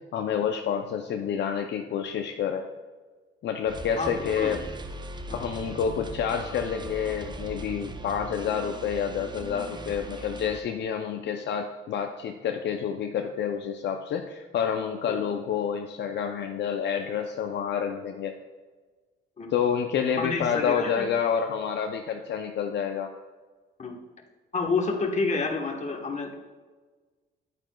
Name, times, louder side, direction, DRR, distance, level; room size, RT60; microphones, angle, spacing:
voice 1, 0.1-2.7 3.4-4.6 5.3-18.4 19.5-23.1, left 7 dB, 65° left, 5 dB, 0.5 m, -28 dB
sound 1, 3.7-10.6, right 2 dB, 20° right, 0.6 m, -39 dB
voice 2, 4.0-4.6 5.3-5.4 15.1-15.2 19.4-19.6 20.2-21.1 23.8-24.0 24.5-26.3, left 4 dB, 35° left, 2 dB, 1.2 m, -29 dB
9.6 x 8.8 x 2.3 m, 1.4 s
cardioid pair, 90°, 20 cm